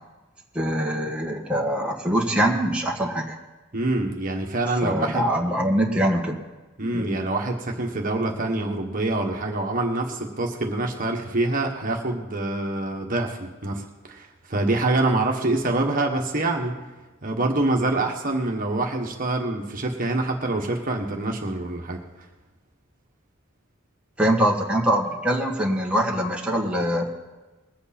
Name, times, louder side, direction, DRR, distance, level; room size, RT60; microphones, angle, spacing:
voice 1, 0.5-3.3 4.8-6.4 6.9-7.1 24.2-27.1, right 1 dB, 5° right, -2 dB, 1.5 m, -23 dB
voice 2, 3.7-5.3 6.8-16.8 17.2-22.0, right 2 dB, 40° right, 1 dB, 1.5 m, -25 dB
21.5 x 8.3 x 4.3 m, 1.2 s
head